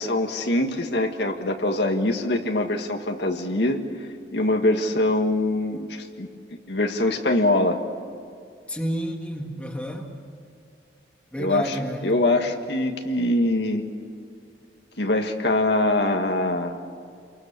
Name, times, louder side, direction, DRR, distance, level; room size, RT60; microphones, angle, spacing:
voice 1, 0.0-3.8 4.3-6.3 6.7-7.8 11.4-13.9 15.0-16.8, left 1 dB, 70° left, 4 dB, 1.6 m, -23 dB
voice 2, 8.7-10.1 11.3-12.1, equal, 5° left, 2 dB, 1.9 m, -30 dB
29.0 x 23.5 x 6.7 m, 2.4 s
head